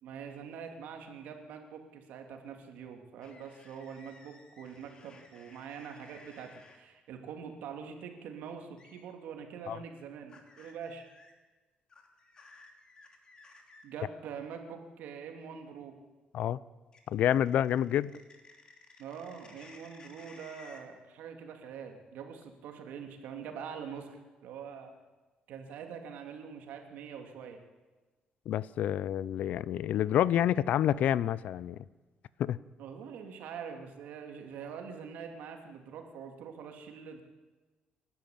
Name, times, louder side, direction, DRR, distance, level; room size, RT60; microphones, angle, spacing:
voice 1, 0.0-11.0 13.8-16.0 19.0-24.9 25.5-27.6 32.8-37.2, right 7 dB, 85° right, 4 dB, 3.0 m, -44 dB
sound 1, 3.2-6.8 8.8-9.0 10.3-11.3 11.9-13.8 16.9-20.8, left 3 dB, 30° left, 3.0 m, -56 dB
voice 2, 17.1-18.1 28.5-31.8 32.4-32.6, left 11 dB, 65° left, 19 dB, 0.6 m, -28 dB
29.0 x 12.0 x 8.8 m, 1.3 s
cardioid pair, 155°, 3 cm